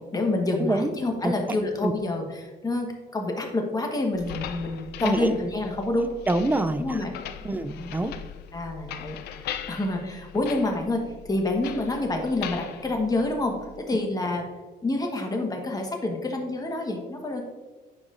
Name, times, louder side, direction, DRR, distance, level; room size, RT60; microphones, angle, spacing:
voice 1, 0.0-6.1 6.8-7.2 8.5-9.2 9.4-14.4 14.8-17.4, left 2 dB, 20° left, 2 dB, 1.2 m, -28 dB
sound 1, 4.1-13.8, left 9 dB, 75° left, 0.5 m, -40 dB
voice 2, 5.0-5.3 6.3-7.0 7.4-8.1, right 2 dB, 10° right, 10 dB, 0.4 m, -25 dB
9.6 x 4.8 x 2.5 m, 1.3 s
cardioid pair, 110°, 17 cm